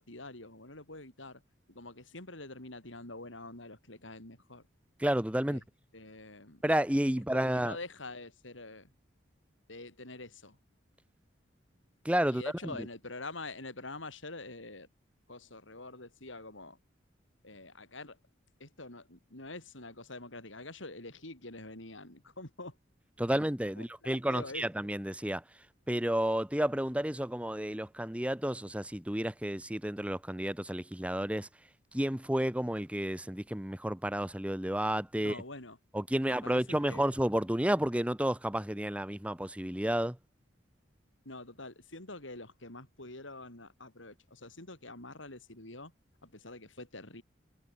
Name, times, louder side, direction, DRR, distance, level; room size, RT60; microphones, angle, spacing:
voice 1, 0.0-1.4 1.7-4.6 5.5-5.6 5.9-6.6 7.6-8.9 9.7-10.6 12.3-14.9 15.3-16.8 17.4-18.2 18.6-22.7 23.3-23.5 23.8-24.6 35.2-35.8 36.2-37.1 41.3-45.9 46.2-47.2, left 2 dB, 85° left, 7.1 m, -46 dB
voice 2, 5.0-5.6 6.6-7.8 12.0-12.4 12.8-12.9 23.2-31.5 31.9-35.4 35.9-40.2, right 1 dB, 5° right, 1.0 m, -31 dB
head